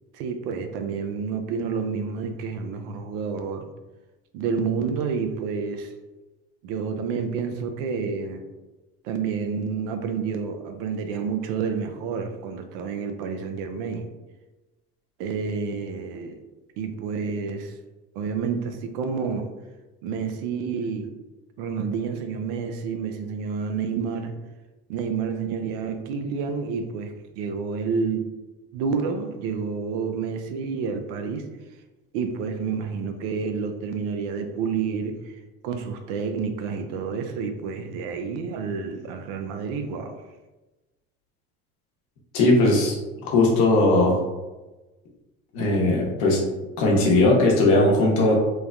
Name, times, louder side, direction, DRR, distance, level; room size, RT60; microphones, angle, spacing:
voice 1, 0.1-3.7 4.3-5.9 6.6-8.4 9.0-14.1 15.2-16.4 16.8-17.7 18.2-19.5 20.0-21.1 21.6-24.3 24.9-28.3 28.7-31.5 32.1-35.3 35.6-40.2, right 5 dB, 75° right, 7 dB, 0.5 m, -29 dB
voice 2, 42.3-43.0 43.2-44.1 45.5-46.4 46.8-48.3, left 2 dB, 70° left, -2 dB, 0.9 m, -18 dB
3.2 x 2.1 x 2.4 m, 1.1 s
hypercardioid pair, 75°, 30 cm